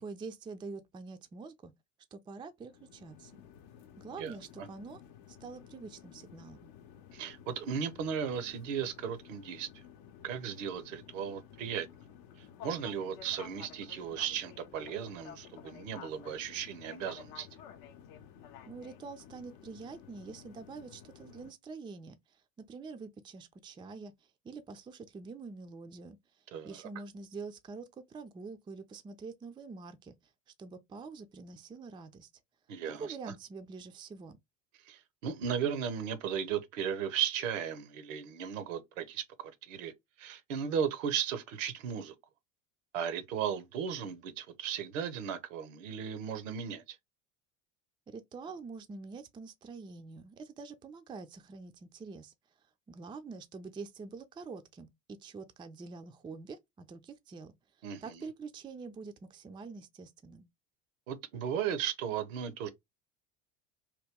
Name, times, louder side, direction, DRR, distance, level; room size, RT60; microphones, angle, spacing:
voice 1, 0.0-1.7 2.1-3.4 4.0-5.0 5.3-6.7 18.7-24.1 24.4-26.2 26.6-30.1 30.6-32.3 33.0-34.4 48.1-52.3 52.9-60.5, right 4 dB, 15° right, 0.4 m, -46 dB
sound 1, 2.7-21.5, left 9 dB, 60° left, 0.7 m, -53 dB
voice 2, 4.2-4.7 7.1-9.7 10.2-11.9 12.4-17.5 26.5-26.8 32.7-33.1 34.9-39.9 40.2-42.1 42.9-47.0 57.8-58.2 61.1-62.7, right 8 dB, 75° right, 0.8 m, -36 dB
3.0 x 2.2 x 3.5 m
hypercardioid pair, 80°, 39 cm